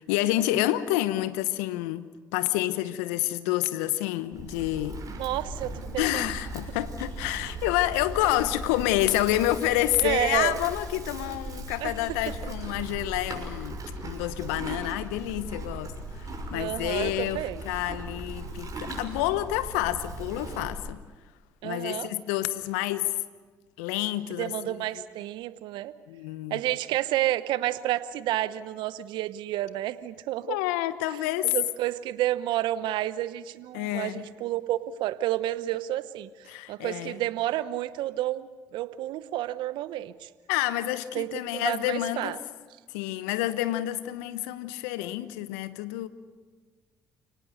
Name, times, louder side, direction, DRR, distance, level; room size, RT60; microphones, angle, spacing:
voice 1, 0.0-2.1 2.3-5.0 6.0-15.9 16.2-21.0 21.6-23.1 23.8-25.0 26.1-26.6 30.5-31.5 33.7-34.2 36.5-37.1 40.5-42.4 42.9-46.1, left 15 dB, 80° left, 1.0 m, -28 dB
Livestock farm animals working animals, 4.3-20.8, right 2 dB, 45° right, 6.5 m, -38 dB
voice 2, 5.2-6.3 8.2-8.4 10.0-10.6 11.8-11.9 16.5-17.6 21.6-22.1 24.3-25.9 26.5-30.6 31.1-31.2 31.4-40.3 41.1-42.4, right 14 dB, 70° right, 1.0 m, -30 dB
29.5 x 18.0 x 6.6 m
hypercardioid pair, 55°, 9 cm